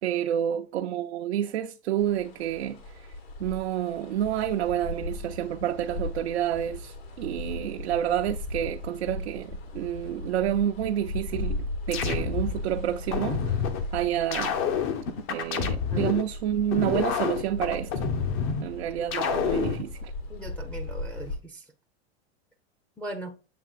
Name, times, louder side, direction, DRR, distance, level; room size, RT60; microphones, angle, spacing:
voice 1, 0.0-3.1 3.4-13.6 13.9-14.6 15.3-18.2 18.6-20.1, right 11 dB, 85° right, 0.6 m, -29 dB
sound 1, 2.0-21.4, left 2 dB, 70° left, 2.0 m, -38 dB
sound 2, 11.3-12.6 13.1-13.8 14.3-16.2 16.7-18.6 19.1-19.8, left 7 dB, 40° left, 0.8 m, -28 dB
voice 2, 20.3-21.6 23.0-23.3, right 1 dB, 5° left, 0.5 m, -39 dB
7.6 x 2.9 x 2.4 m
hypercardioid pair, 120°, 32 cm